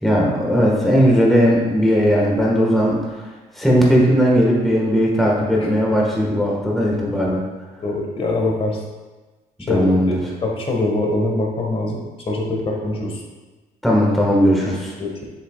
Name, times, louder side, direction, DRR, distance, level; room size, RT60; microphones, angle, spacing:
voice 1, 0.0-3.0 3.6-7.4 9.7-10.2 13.8-14.9, equal, ahead, -4 dB, 1.6 m, -17 dB
voice 2, 7.8-8.8 9.7-13.2 15.0-15.2, left 2 dB, 35° left, 0 dB, 1.6 m, -23 dB
7.4 x 7.3 x 2.4 m, 1.2 s
cardioid pair, 110°, 17 cm